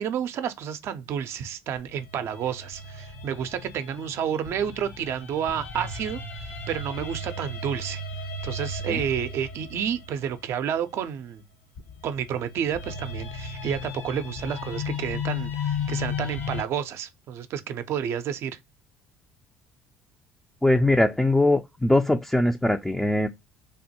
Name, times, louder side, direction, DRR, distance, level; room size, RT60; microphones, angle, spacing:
voice 1, 0.0-6.2 6.7-8.0 8.4-11.4 12.0-18.6, right 8 dB, 55° right, 0.4 m, -30 dB
sound 1, 1.8-10.9 11.8-16.6, left 4 dB, 60° left, 0.7 m, -35 dB
voice 2, 20.6-23.3, left 1 dB, 5° left, 0.3 m, -21 dB
3.4 x 2.1 x 2.7 m
hypercardioid pair, 65°, 5 cm